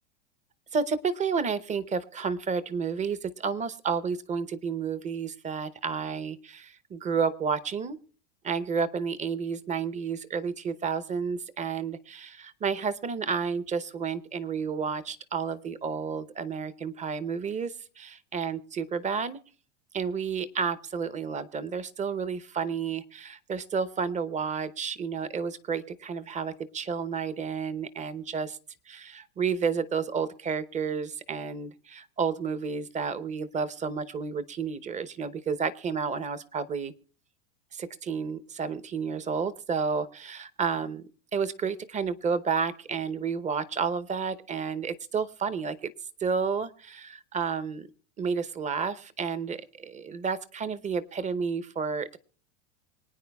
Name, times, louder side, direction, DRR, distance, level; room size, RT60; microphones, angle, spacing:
voice 1, 0.7-8.0 8.4-19.4 19.9-28.6 28.9-36.9 37.7-45.9 46.2-47.9 48.2-52.2, right 6 dB, 20° right, 14 dB, 0.8 m, -31 dB
25.5 x 9.3 x 2.3 m, 0.40 s
hypercardioid pair, 110°, 37 cm